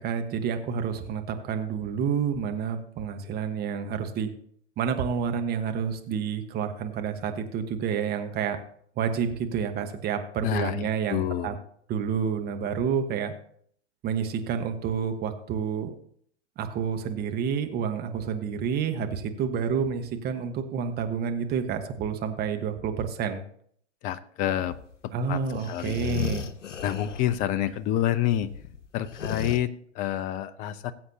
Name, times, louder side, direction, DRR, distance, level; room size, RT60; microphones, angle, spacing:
voice 1, 0.0-4.3 4.8-8.6 9.0-11.5 11.9-13.3 14.0-15.9 16.6-23.4 25.1-26.5, right 7 dB, 25° right, 6 dB, 1.1 m, -29 dB
voice 2, 10.4-11.6 24.0-24.8 25.3-25.4 25.7-26.1 26.8-28.5 28.9-30.9, left 11 dB, 20° left, 14 dB, 0.5 m, -28 dB
sound 1, 24.6-24.9 25.5-27.4 27.6-27.7 28.3-29.6, left 8 dB, 70° left, 1.0 m, -35 dB
18.0 x 8.0 x 2.8 m, 0.63 s
figure-of-eight pair, 105°, 37 cm